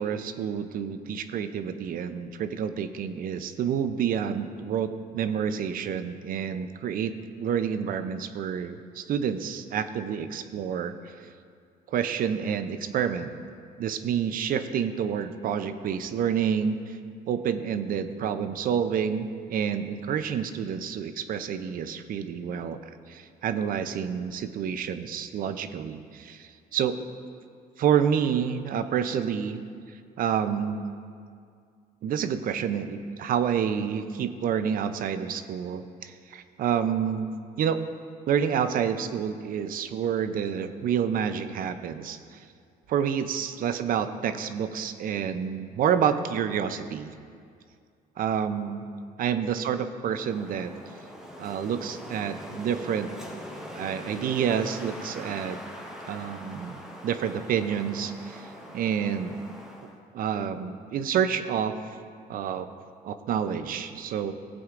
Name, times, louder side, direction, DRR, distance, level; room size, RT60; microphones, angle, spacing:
voice 1, 0.0-10.9 11.9-13.3 13.8-17.0 17.3-22.8 23.1-27.0 27.8-29.6 30.2-30.9 32.0-37.3 37.6-37.8 38.3-42.2 42.9-47.1 48.2-48.8 49.2-50.7 51.4-53.1 53.7-55.6 56.1-56.8 57.0-58.5 58.7-59.3 60.1-62.0 62.3-62.7 63.0-64.3, right 8 dB, 55° right, 10 dB, 0.6 m, -28 dB
Wind, 50.1-60.0, equal, 5° right, 1.2 m, -42 dB
17.0 x 7.8 x 2.5 m, 2.2 s
cardioid pair, 110°, 17 cm